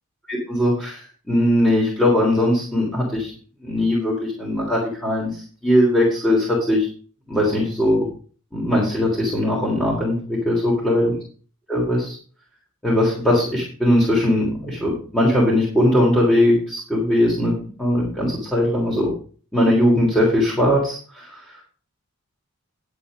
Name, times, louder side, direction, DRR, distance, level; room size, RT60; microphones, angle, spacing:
voice 1, 0.3-3.3 3.6-6.9 7.3-8.1 8.5-11.1 11.7-12.2 12.8-17.5 17.8-19.1 19.5-21.6, left 1 dB, 5° left, -6 dB, 3.3 m, -20 dB
10.5 x 7.7 x 5.1 m, 0.42 s
head